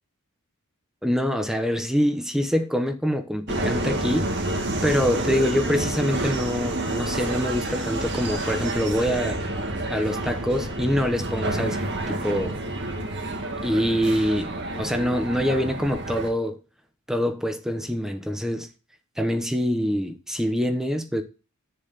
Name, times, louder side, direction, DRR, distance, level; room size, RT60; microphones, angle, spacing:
voice 1, 1.0-9.4 9.9-12.6 13.6-14.5 14.8-16.6 17.1-18.7 19.2-21.2, equal, ahead, 1.0 m, -25 dB
Subway metro underground, 3.5-16.3, right 1 dB, 55° right, 2.1 m, -29 dB
9.9 x 6.8 x 4.1 m
head